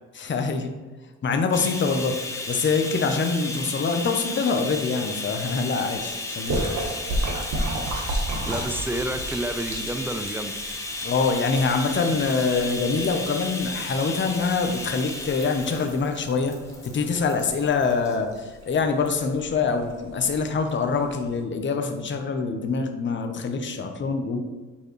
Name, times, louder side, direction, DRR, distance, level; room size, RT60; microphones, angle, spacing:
voice 1, 0.1-0.7 1.2-2.2 2.5-6.9 11.0-16.5 16.8-24.4, left 4 dB, 40° left, 5 dB, 0.8 m, -25 dB
Bathtub (filling or washing), 1.5-18.2 19.1-19.2 19.6-19.7, left 2 dB, 10° left, 1.0 m, -34 dB
Splash splatter, 6.4-21.4, right 1 dB, 70° right, 1.4 m, -34 dB
voice 2, 8.5-10.5, right 1 dB, 5° right, 8 dB, 0.5 m, -29 dB
7.0 x 4.9 x 3.1 m, 1.3 s
cardioid pair, 90°, 30 cm